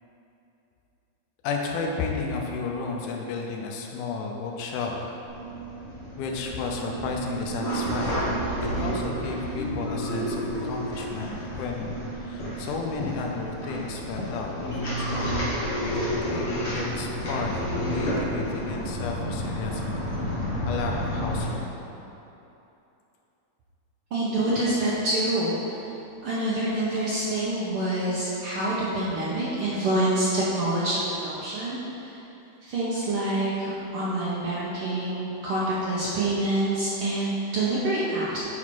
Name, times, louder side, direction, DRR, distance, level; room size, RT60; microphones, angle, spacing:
voice 1, 1.4-5.0 6.2-15.4 15.8-16.0 16.3-17.5 17.9-20.1 20.7-21.7, left 4 dB, 80° left, 1 dB, 2.1 m, -33 dB
sound 1, 5.3-21.4, equal, 40° left, 0.9 m, -30 dB
voice 2, 24.1-25.5 26.2-32.1 32.6-38.4, right 1 dB, 75° right, -7 dB, 1.3 m, -26 dB
7.3 x 4.2 x 4.5 m, 2.9 s
omnidirectional pair, 3.5 m